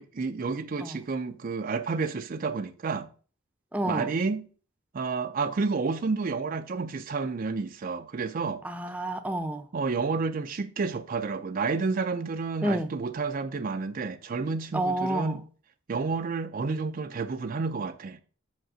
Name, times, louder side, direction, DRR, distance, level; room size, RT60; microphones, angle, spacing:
voice 1, 0.0-3.1 3.9-4.4 4.9-8.6 9.7-15.4 15.9-18.2, right 4 dB, 45° right, 0.5 m, -30 dB
voice 2, 3.7-4.1 8.6-9.7 12.6-12.9 14.7-15.4, right 1 dB, 5° right, 0.7 m, -29 dB
5.9 x 5.2 x 6.1 m
head